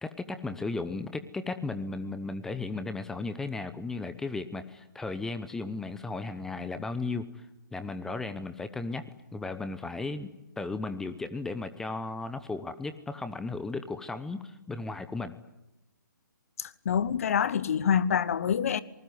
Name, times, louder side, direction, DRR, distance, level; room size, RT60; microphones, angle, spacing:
voice 1, 0.0-7.4 7.7-9.0 9.3-15.3, left 3 dB, 5° left, 0.8 m, -35 dB
voice 2, 16.6-18.8, left 8 dB, 40° left, 1.1 m, -26 dB
26.5 x 20.0 x 9.4 m
figure-of-eight pair, 145°, 11 cm